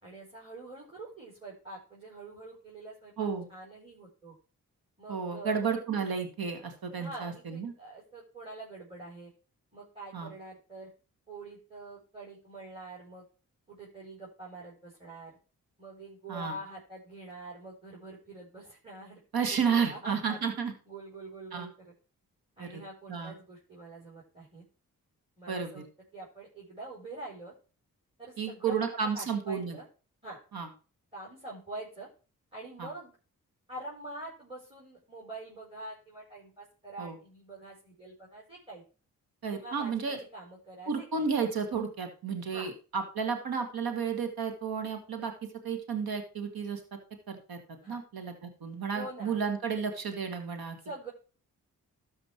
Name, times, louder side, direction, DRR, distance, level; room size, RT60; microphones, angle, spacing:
voice 1, 0.0-3.1 3.5-4.4 5.0-5.5 7.0-9.3 9.7-10.9 11.3-13.2 13.7-15.4 15.8-19.2 19.5-20.4 20.9-21.9 22.6-24.6 25.4-25.8 26.1-27.5 28.2-28.7 29.1-29.9 30.2-30.4 31.1-32.1 32.5-33.1 33.7-38.8 39.5-41.2 42.5-42.7 47.8-48.0 48.9-49.4 50.8-51.1, right 2 dB, 15° right, -3 dB, 4.4 m, -45 dB
voice 2, 3.2-3.5 5.1-7.7 10.1-10.3 16.3-16.6 19.3-20.7 21.5-21.7 22.6-22.8 23.1-23.3 25.5-25.8 28.4-29.8 30.5-30.7 32.8-32.9 37.0-37.2 39.4-40.2 40.9-46.8 47.3-47.6 47.9-50.8, right 6 dB, 75° right, 7 dB, 2.1 m, -32 dB
13.0 x 5.2 x 4.5 m, 0.35 s
supercardioid pair, 45°, 37 cm